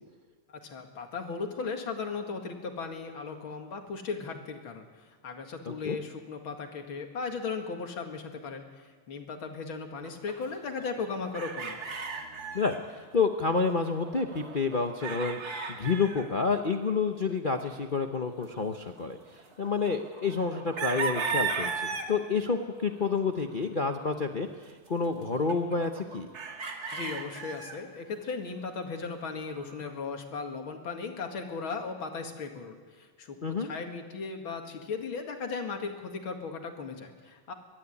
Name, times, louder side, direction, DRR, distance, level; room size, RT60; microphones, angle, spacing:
voice 1, 0.6-11.8 26.9-37.5, left 4 dB, 65° left, 4 dB, 2.6 m, -37 dB
voice 2, 5.7-6.0 12.5-15.4 15.7-26.3 33.4-33.7, left 4 dB, 90° left, 4 dB, 0.4 m, -29 dB
sound 1, 10.0-12.8 13.1-13.2 13.4-16.3 17.2-17.3 19.3-22.1 22.9-23.6 24.9-25.0 25.2-27.8 29.3-29.9, right 5 dB, 45° right, 2.2 m, -36 dB
23.0 x 12.5 x 9.9 m, 1.5 s
omnidirectional pair, 2.4 m